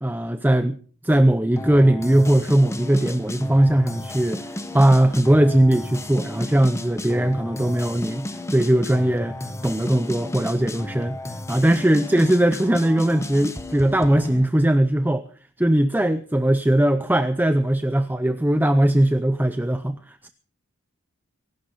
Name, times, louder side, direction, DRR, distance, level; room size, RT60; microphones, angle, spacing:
voice 1, 0.0-11.2 11.5-15.3 15.6-20.3, right 1 dB, 10° right, 0.7 m, -20 dB
sound 1, 1.6-14.5, left 1 dB, 15° left, 1.2 m, -33 dB
24.0 x 12.0 x 4.1 m
head